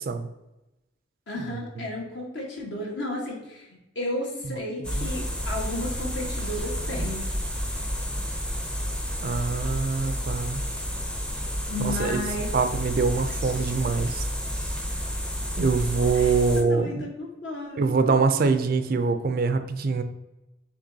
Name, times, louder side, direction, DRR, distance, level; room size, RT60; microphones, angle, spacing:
voice 1, 1.3-3.7 3.9-7.3 11.7-12.5 13.3-13.7 14.9-15.0 16.1-17.9, left 1 dB, 70° left, -1 dB, 1.3 m, -33 dB
sound 1, 4.8-16.6, equal, 5° left, 0.5 m, -30 dB
voice 2, 9.2-10.6 11.8-12.2 12.5-14.3 15.6-17.0 17.8-20.0, right 4 dB, 55° right, 9 dB, 0.4 m, -24 dB
6.6 x 3.0 x 2.7 m, 0.98 s
head